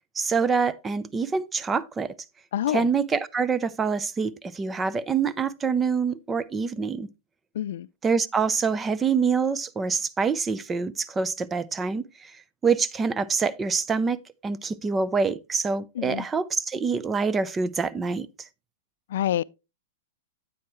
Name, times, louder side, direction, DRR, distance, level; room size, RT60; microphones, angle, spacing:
voice 1, 0.2-2.1 2.7-7.1 8.0-12.3 12.6-18.3, right 5 dB, 15° right, 0.5 m, -26 dB
voice 2, 2.5-2.9 7.5-7.9 16.0-16.3 19.1-19.4, left 11 dB, 70° left, 0.3 m, -27 dB
9.5 x 8.5 x 3.0 m
hypercardioid pair, 135°, 0 cm